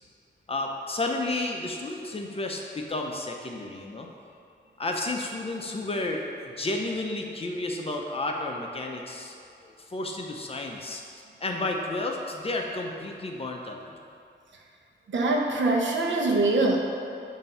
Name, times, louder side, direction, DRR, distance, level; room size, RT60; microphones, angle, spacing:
voice 1, 0.5-4.1 4.8-14.0, left 2 dB, 30° left, 1 dB, 0.5 m, -32 dB
voice 2, 15.1-16.8, right 2 dB, 80° right, 0 dB, 0.8 m, -23 dB
7.3 x 2.7 x 5.5 m, 2.6 s
wide cardioid pair, 160°, 19 cm